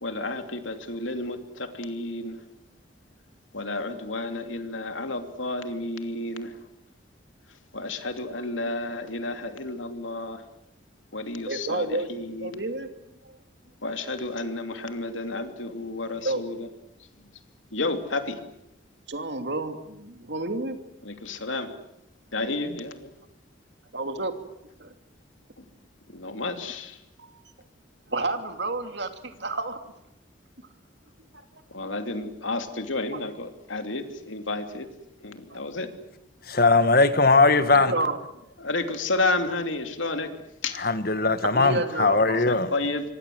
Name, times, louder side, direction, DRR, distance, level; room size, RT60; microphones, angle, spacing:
voice 1, 0.0-2.4 3.5-6.6 7.7-10.4 11.1-12.6 13.8-16.7 17.7-18.4 21.0-21.7 22.3-23.1 25.6-25.7 26.1-27.0 31.7-34.9 35.2-35.9 38.6-40.3 40.6-40.8 42.5-43.0, left 2 dB, 85° left, 7 dB, 3.0 m, -31 dB
voice 2, 11.5-12.1 12.4-12.9 13.2-13.4 16.2-16.4 19.1-20.8 23.9-24.3 24.8-24.9 27.2-27.4 28.1-29.8 31.8-31.9 35.5-35.6 37.7-38.2 41.5-42.4, right 2 dB, 60° right, 7 dB, 2.7 m, -30 dB
voice 3, 36.4-37.9 40.8-42.7, left 3 dB, 50° left, 12 dB, 1.5 m, -20 dB
26.0 x 25.5 x 7.9 m, 0.83 s
head